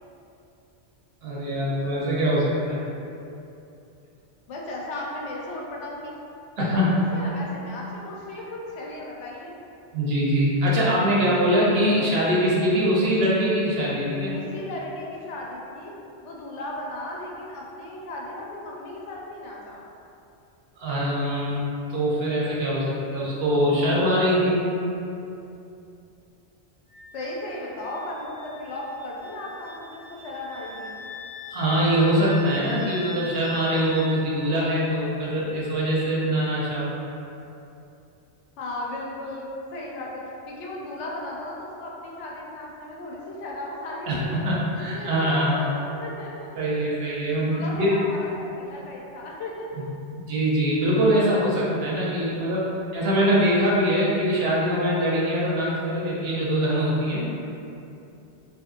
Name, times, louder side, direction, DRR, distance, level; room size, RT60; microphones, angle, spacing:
voice 1, 1.2-2.8 6.6-6.9 9.9-14.3 20.8-21.6 21.9-24.7 31.5-36.9 44.1-45.6 46.6-48.0 50.3-57.4, equal, 65° right, -6 dB, 0.8 m, -23 dB
voice 2, 4.5-6.1 6.6-9.6 14.3-15.9 16.2-19.8 27.1-31.0 38.6-40.1 40.5-44.4 44.7-46.5 47.4-49.9, left 1 dB, 90° left, -3 dB, 0.9 m, -36 dB
Wind instrument woodwind instrument, 26.9-34.2, left 1 dB, 50° left, 0.7 m, -41 dB
2.9 x 2.6 x 2.4 m, 2.7 s
omnidirectional pair, 1.2 m